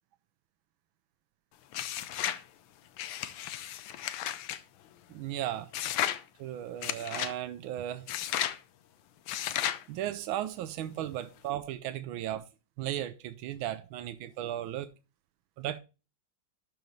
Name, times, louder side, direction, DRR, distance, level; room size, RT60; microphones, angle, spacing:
sound 1, 1.7-2.4 3.0-4.6 5.7-6.2 6.8-7.3 8.1-8.6 9.3-9.8, left 12 dB, 80° left, 1.5 m, -33 dB
voice 1, 5.1-5.7 6.4-8.1 9.9-12.5 12.8-14.9 15.6-15.8, right 12 dB, 90° right, 1.4 m, -36 dB
12.0 x 5.2 x 3.1 m
omnidirectional pair, 2.1 m